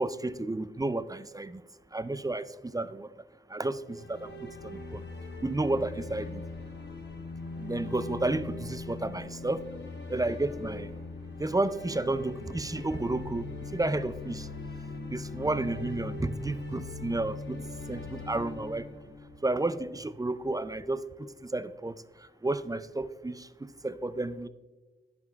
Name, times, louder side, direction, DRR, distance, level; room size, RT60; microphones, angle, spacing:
voice 1, 0.0-1.6 1.9-3.1 3.5-5.0 5.4-6.4 7.6-9.6 10.1-10.9 11.4-14.5 15.1-17.6 17.9-18.9 19.4-22.0 22.4-24.5, right 2 dB, 15° right, 0.3 m, -32 dB
sound 1, 3.8-19.9, left 3 dB, 55° left, 0.9 m, -41 dB
13.5 x 5.5 x 2.3 m
wide cardioid pair, 80°, 21 cm